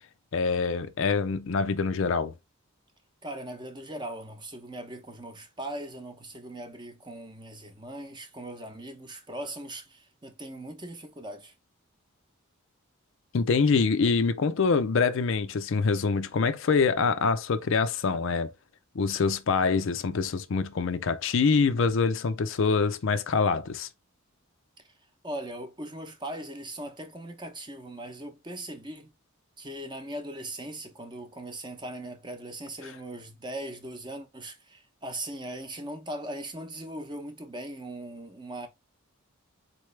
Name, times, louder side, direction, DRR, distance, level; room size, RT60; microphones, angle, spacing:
voice 1, 0.3-2.3 13.3-18.5 18.9-23.9, left 5 dB, 60° left, 0.4 m, -25 dB
voice 2, 3.2-11.5 25.2-29.1 29.6-38.7, right 1 dB, 20° right, 0.8 m, -39 dB
4.1 x 3.2 x 3.2 m
head